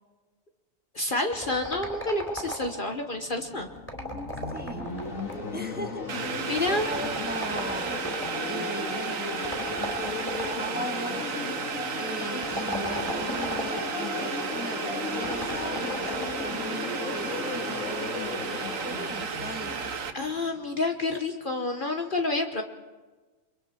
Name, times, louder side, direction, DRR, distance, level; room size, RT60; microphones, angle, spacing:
voice 1, 0.9-3.7 6.4-6.9 20.1-22.6, left 2 dB, 40° left, 4 dB, 1.3 m, -29 dB
sound 1, 1.3-2.9 3.8-5.6 6.6-8.4 9.4-10.8 12.3-13.9 15.2-16.5, equal, 10° left, 3.7 m, -36 dB
sound 2, 2.9-20.8, left 3 dB, 85° left, 2.4 m, -35 dB
voice 2, 4.5-4.9 5.5-8.1 8.5-9.8 10.4-11.3 12.0-20.0, equal, 5° right, 4 dB, 1.5 m, -39 dB
Boiling, 6.1-20.1, right 6 dB, 80° right, 1.5 m, -34 dB
29.0 x 23.5 x 4.4 m, 1.3 s
omnidirectional pair, 1.4 m